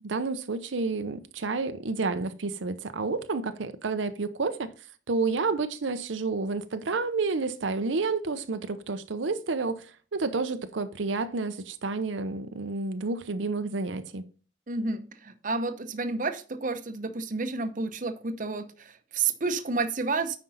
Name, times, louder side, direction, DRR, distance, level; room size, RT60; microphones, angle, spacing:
voice 1, 0.0-4.7 5.1-9.9 10.1-14.2, right 3 dB, 90° right, 0.7 m, -30 dB
voice 2, 14.7-20.4, right 3 dB, 45° right, 0.8 m, -30 dB
9.5 x 5.3 x 4.0 m
head